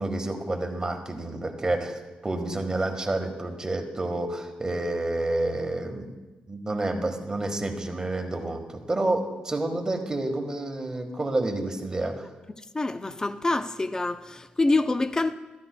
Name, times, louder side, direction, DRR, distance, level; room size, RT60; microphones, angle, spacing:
voice 1, 0.0-6.1 6.5-12.2, right 2 dB, 25° right, 1.4 m, -29 dB
voice 2, 12.7-15.3, left 2 dB, 20° left, 0.6 m, -26 dB
14.0 x 12.5 x 2.2 m
cardioid pair, 75°, 3 cm